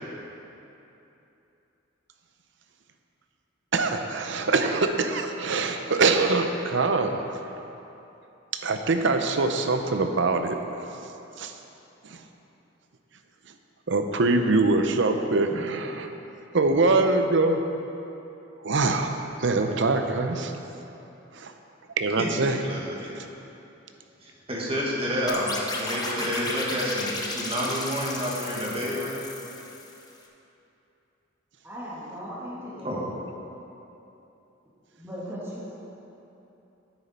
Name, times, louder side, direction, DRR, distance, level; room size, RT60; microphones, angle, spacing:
voice 1, 3.7-7.2 8.6-10.6 11.4-11.5 12.0-12.2 13.9-16.1 16.5-17.6 18.6-19.1 19.4-20.5 21.3-21.5 22.0-22.6, right 3 dB, 65° right, 6 dB, 0.7 m, -23 dB
voice 2, 22.2-23.1 24.2-29.2 32.8-33.1, equal, 30° right, -4 dB, 1.8 m, -29 dB
sound 1, 25.3-30.1, left 2 dB, 20° left, 0.9 m, -34 dB
voice 3, 31.6-33.0 35.0-35.7, equal, 15° right, -8 dB, 1.8 m, -37 dB
10.0 x 9.1 x 4.3 m, 3.0 s
head